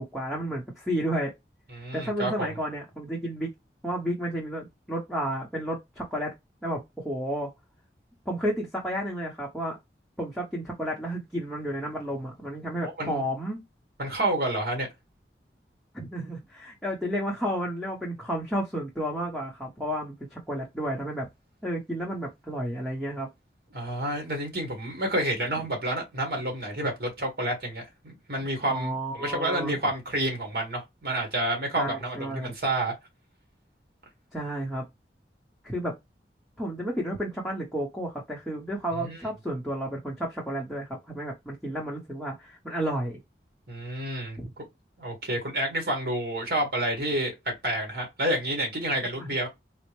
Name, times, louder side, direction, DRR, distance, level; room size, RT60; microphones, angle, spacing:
voice 1, 0.0-1.3 1.9-3.5 3.8-6.3 6.6-7.5 8.3-9.8 10.2-13.6 15.9-21.3 21.6-23.3 28.6-29.7 31.8-32.5 34.3-34.9 35.6-36.0 36.6-43.2 44.4-44.5 49.2-49.3, equal, ahead, 0.7 m, -32 dB
voice 2, 1.7-2.5 12.8-13.2 14.0-14.9 23.7-32.9 39.0-39.2 43.7-44.4 45.0-49.5, right 1 dB, 60° right, 1.7 m, -29 dB
4.2 x 2.0 x 3.0 m
head